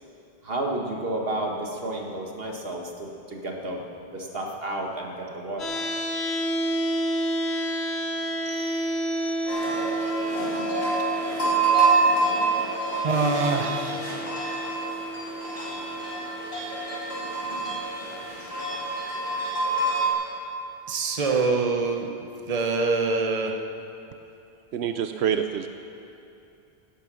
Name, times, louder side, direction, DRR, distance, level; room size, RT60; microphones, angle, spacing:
voice 1, 0.4-3.8 4.1-5.9, right 1 dB, 65° right, 0 dB, 1.9 m, -31 dB
sound 1, 5.6-17.6, right 1 dB, 80° left, 2.2 m, -31 dB
sound 2, 8.5-10.0, right 1 dB, 30° left, 3.2 m, -44 dB
sound 3, 9.5-20.1, right 3 dB, 60° left, 4.5 m, -27 dB
voice 2, 13.0-14.4 18.1-18.6 20.9-23.6, right 3 dB, 35° right, 2 dB, 1.1 m, -26 dB
voice 3, 24.7-25.7, right 8 dB, 90° right, 7 dB, 0.9 m, -26 dB
17.0 x 11.5 x 6.2 m, 2.8 s
omnidirectional pair, 1.1 m